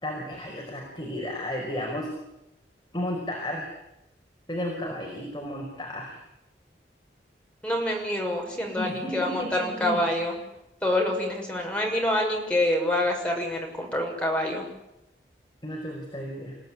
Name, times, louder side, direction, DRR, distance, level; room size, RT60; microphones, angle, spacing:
voice 1, 0.0-2.1 2.9-3.7 4.5-6.2 8.7-10.0 15.6-16.6, left 1 dB, 25° left, 0 dB, 5.1 m, -33 dB
voice 2, 7.6-10.3 10.8-14.6, left 1 dB, 5° left, 0 dB, 6.2 m, -26 dB
28.0 x 17.5 x 9.9 m, 0.90 s
head